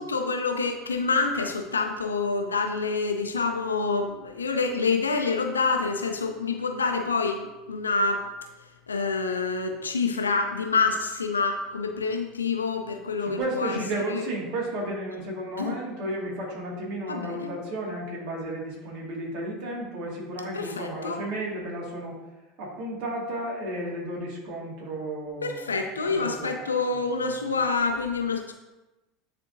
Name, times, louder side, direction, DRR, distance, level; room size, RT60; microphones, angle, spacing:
voice 1, 0.0-8.3 8.9-13.8 14.1-14.2 15.6-15.8 17.1-17.5 20.5-21.2 25.4-28.5, left 4 dB, 85° left, 5 dB, 0.6 m, -27 dB
voice 2, 13.2-22.2 22.6-26.7, right 1 dB, 55° right, -3 dB, 2.1 m, -33 dB
9.9 x 3.5 x 2.7 m, 1.1 s
hypercardioid pair, 75°, 0 cm